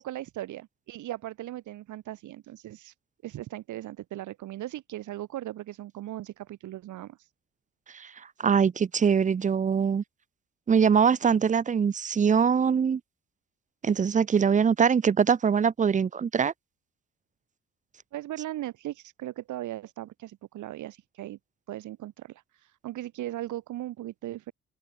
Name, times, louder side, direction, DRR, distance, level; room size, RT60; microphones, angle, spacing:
voice 1, 0.0-2.9 3.2-7.3 18.1-21.4 21.7-24.5, right 14 dB, 80° right, 1.4 m, -38 dB
voice 2, 8.4-10.0 10.7-13.0 13.8-16.5, right 6 dB, 25° right, 0.5 m, -23 dB
cardioid pair, 90°, 30 cm